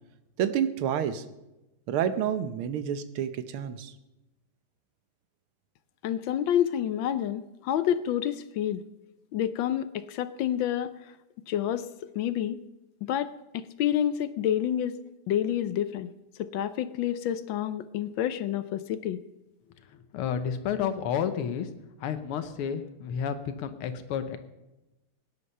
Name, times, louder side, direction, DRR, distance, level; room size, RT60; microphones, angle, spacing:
voice 1, 0.4-1.2 1.9-3.9, right 9 dB, 80° right, 12 dB, 1.7 m, -29 dB
voice 2, 6.0-8.8 9.3-11.0 11.5-11.8 12.1-12.6 13.0-14.9 15.3-16.1 16.4-19.2, left 10 dB, 70° left, 13 dB, 1.3 m, -28 dB
voice 3, 19.8-21.7 22.0-24.4, left 8 dB, 90° left, 9 dB, 1.8 m, -31 dB
18.0 x 10.0 x 5.5 m, 0.98 s
omnidirectional pair, 2.4 m